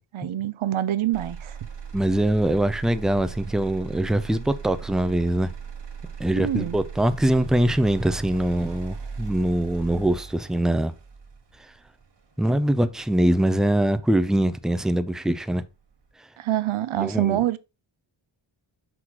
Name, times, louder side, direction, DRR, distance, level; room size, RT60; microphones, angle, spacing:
voice 1, 0.0-1.6 6.4-6.8 16.4-17.6, right 12 dB, 75° right, 0.7 m, -26 dB
Motor vehicle (road), 1.1-15.1 15.6-16.1, right 6 dB, 55° right, 1.3 m, -39 dB
voice 2, 1.9-5.5 6.2-10.9 12.4-15.6 17.0-17.4, right 1 dB, ahead, 0.4 m, -23 dB
6.2 x 6.1 x 3.0 m
wide cardioid pair, 100°, 50 cm